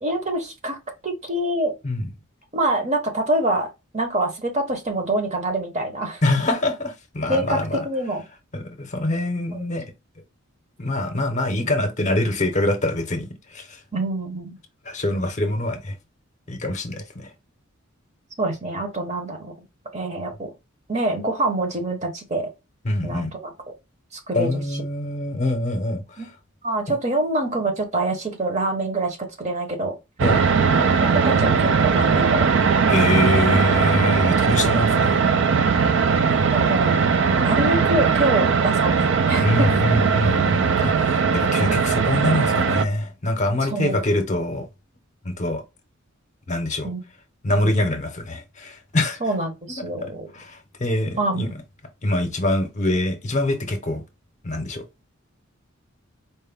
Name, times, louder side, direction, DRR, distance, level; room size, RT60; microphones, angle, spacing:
voice 1, 0.0-0.8 1.0-1.7 2.5-6.2 7.3-8.3 9.5-9.6 13.9-14.6 18.4-19.5 19.9-20.5 20.9-22.5 23.0-23.7 24.1-24.6 26.2-26.3 26.6-29.9 30.8-32.5 36.5-37.0 37.3-39.7 43.6-44.1 46.8-47.0 49.2-50.3 51.2-51.4, right 2 dB, 35° right, 0.8 m, -25 dB
voice 2, 6.2-7.8 8.5-9.8 10.8-13.8 14.9-15.9 16.5-17.3 22.8-23.3 24.3-26.0 30.2-30.4 32.9-35.2 39.4-44.7 45.2-45.6 46.5-46.9 47.4-49.2 50.3-51.5 52.0-54.0 54.4-54.8, left 1 dB, 35° left, 0.7 m, -24 dB
sound 1, 30.2-42.8, right 5 dB, 60° right, 0.4 m, -19 dB
4.4 x 2.1 x 3.4 m
head